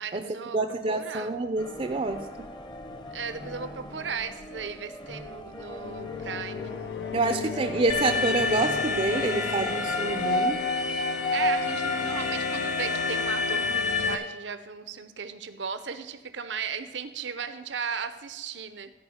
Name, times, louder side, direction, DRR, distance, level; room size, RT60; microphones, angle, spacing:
voice 1, 0.0-0.6 0.9-1.3 3.1-6.7 7.3-8.1 8.4-8.7 11.3-18.9, right 6 dB, 90° right, 10 dB, 0.8 m, -36 dB
voice 2, 0.5-2.2 7.1-10.6, right 3 dB, 35° right, 7 dB, 0.4 m, -27 dB
sound 1, 1.6-10.7, left 1 dB, 25° left, 0.8 m, -41 dB
sound 2, 5.8-14.2, left 6 dB, 75° left, 0.4 m, -36 dB
Alarm, 7.9-14.1, left 3 dB, 40° left, 1.2 m, -28 dB
13.5 x 4.9 x 8.6 m, 1.2 s
head